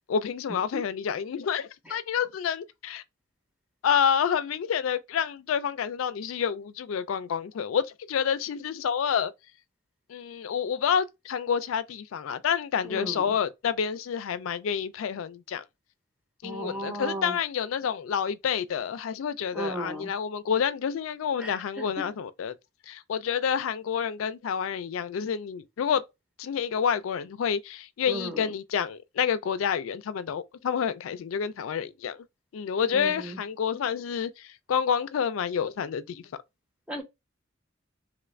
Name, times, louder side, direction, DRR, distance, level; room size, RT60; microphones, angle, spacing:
voice 1, 0.1-3.0 3.8-9.3 10.1-15.6 16.4-22.5 22.9-26.0 26.4-32.2 32.5-36.2, left 7 dB, 85° left, 0.4 m, -28 dB
voice 2, 12.8-13.3 16.4-17.4 19.5-20.1 21.4-22.1 28.1-28.5 32.9-33.4 36.9-37.0, right 1 dB, 5° right, 0.7 m, -35 dB
3.0 x 2.4 x 3.1 m
head